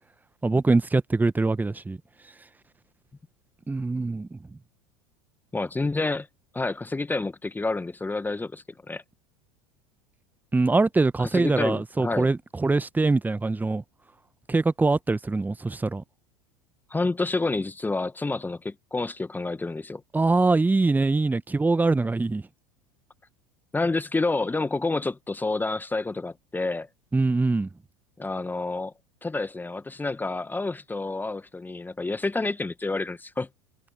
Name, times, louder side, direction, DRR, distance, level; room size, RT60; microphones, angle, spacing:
voice 1, 0.4-2.0 3.7-4.4 10.5-13.8 14.5-16.0 20.1-22.4 27.1-27.7, right 3 dB, 10° right, 1.5 m, -23 dB
voice 2, 5.5-6.3 6.5-9.0 11.2-12.3 16.9-20.0 23.7-26.9 28.2-28.9 29.2-33.5, left 3 dB, 10° left, 1.8 m, -29 dB
figure-of-eight pair, 75°, 17 cm